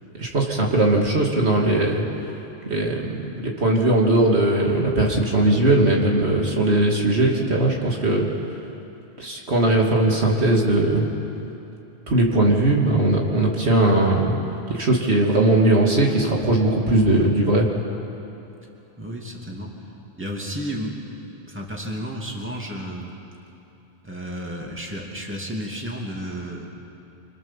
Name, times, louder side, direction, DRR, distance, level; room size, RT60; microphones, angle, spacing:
voice 1, 0.2-2.0 2.6-8.3 9.2-11.1 12.1-14.4 14.7-17.7, right 2 dB, 80° right, -1 dB, 2.9 m, -19 dB
voice 2, 19.0-19.7 20.2-23.1 24.0-26.7, equal, 10° right, -1 dB, 2.9 m, -32 dB
25.5 x 25.5 x 7.4 m, 2.9 s
omnidirectional pair, 1.1 m